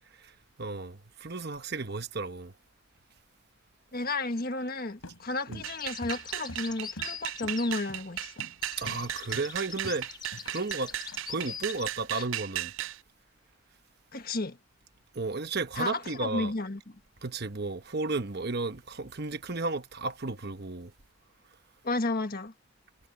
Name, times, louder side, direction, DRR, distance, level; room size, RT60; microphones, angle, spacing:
voice 1, 0.2-2.5 5.5-5.6 8.8-10.1 10.5-10.9 11.3-12.7 15.1-16.5 17.2-20.9, right 3 dB, 50° right, 1.1 m, -33 dB
voice 2, 3.9-8.3 12.1-12.2 14.1-14.6 15.8-16.8 21.8-22.5, left 2 dB, 45° left, 1.6 m, -32 dB
sound 1, 5.0-7.2 7.4-7.6 7.9-8.1 8.4-8.6 8.8-9.0 9.3-10.0 10.3-11.2, left 1 dB, 90° left, 4.8 m, -45 dB
sound 2, 5.6-13.0, right 13 dB, 65° right, 0.4 m, -36 dB
sound 3, 5.8-8.3 8.6-11.9, left 7 dB, 20° left, 0.5 m, -43 dB
head